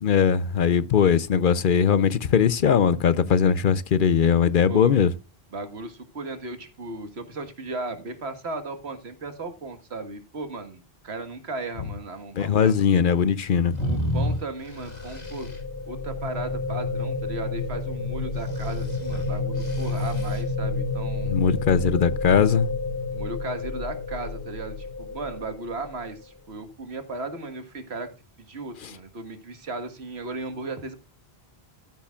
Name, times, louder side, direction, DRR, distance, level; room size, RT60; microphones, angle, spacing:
voice 1, 0.0-5.1 12.4-13.7 21.3-22.8 28.8-28.9, left 7 dB, 60° left, 0.8 m, -20 dB
voice 2, 5.5-12.8 13.8-15.5 15.9-21.3 23.1-28.1 28.4-31.0, right 3 dB, 85° right, 1.8 m, -36 dB
sound 1, 13.7-15.6 18.4-20.4, left 1 dB, 40° left, 2.3 m, -31 dB
sound 2, 14.4-26.4, left 3 dB, 90° left, 7.4 m, -30 dB
14.0 x 8.7 x 2.4 m
omnidirectional pair, 1.1 m